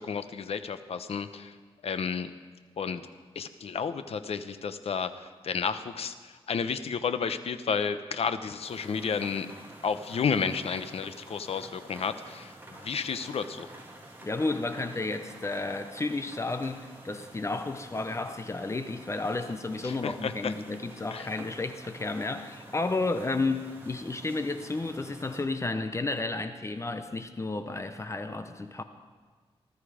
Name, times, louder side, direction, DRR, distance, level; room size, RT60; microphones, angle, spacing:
voice 1, 0.0-1.5 1.8-2.3 2.8-3.0 3.3-9.5 9.8-13.7 19.8-20.5 21.1-21.3, left 6 dB, 75° left, 0.8 m, -32 dB
sound 1, 8.6-25.4, right 1 dB, 20° right, 2.9 m, -49 dB
voice 2, 14.2-28.8, left 3 dB, 30° left, 0.8 m, -32 dB
19.5 x 12.5 x 5.0 m
wide cardioid pair, 125°, 10 cm